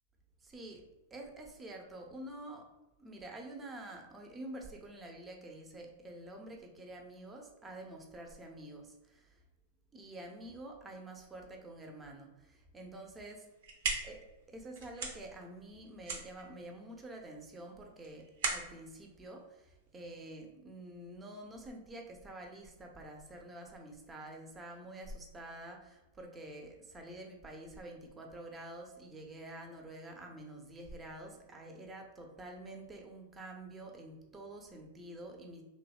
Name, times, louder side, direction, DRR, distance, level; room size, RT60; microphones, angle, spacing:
voice 1, 0.4-2.7 3.0-9.4 9.9-13.5 14.0-14.2 14.5-35.6, right 1 dB, 15° right, 2 dB, 0.5 m, -48 dB
sound 1, 13.4-20.3, right 4 dB, 65° right, 0.5 m, -40 dB
2.7 x 2.0 x 2.3 m, 0.99 s
hypercardioid pair, 115°, 0 cm